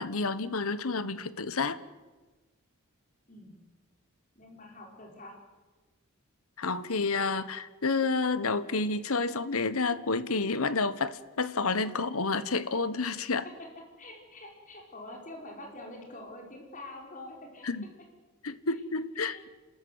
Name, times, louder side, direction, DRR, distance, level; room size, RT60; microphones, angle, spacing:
voice 1, 0.0-1.8 6.6-13.4 17.6-17.9 18.4-19.5, left 4 dB, 80° left, 14 dB, 1.2 m, -30 dB
voice 2, 4.3-5.3 14.0-17.7 18.7-18.8 19.2-19.4, left 1 dB, 35° left, 1 dB, 5.1 m, -46 dB
30.0 x 13.5 x 9.6 m, 1.3 s
head